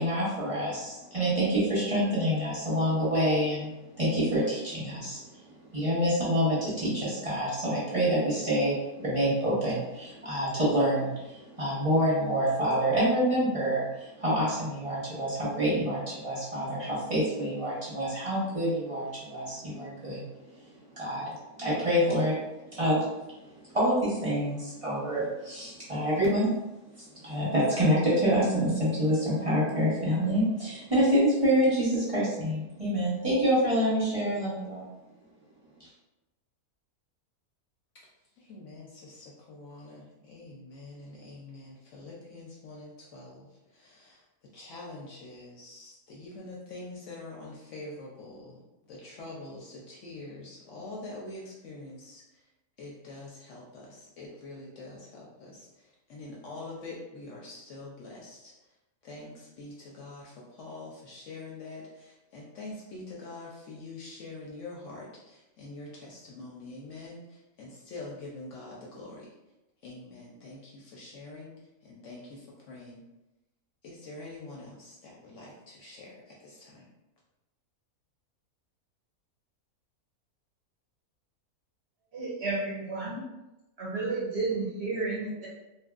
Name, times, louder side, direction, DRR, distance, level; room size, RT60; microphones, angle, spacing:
voice 1, 0.0-5.4 5.7-20.2 21.0-22.3 22.7-23.1 23.7-26.5 27.0-34.9, equal, 30° right, -9 dB, 0.8 m, -27 dB
voice 2, 38.4-43.5 43.7-44.2 44.5-48.6 48.9-52.2 52.8-58.5 59.0-69.3 69.8-71.5 71.8-73.0 73.8-76.9, left 2 dB, 65° left, -3 dB, 0.8 m, -45 dB
voice 3, 82.1-83.2 83.8-85.5, right 3 dB, 60° right, -6 dB, 0.7 m, -31 dB
2.8 x 2.5 x 2.3 m, 0.97 s
omnidirectional pair, 1.6 m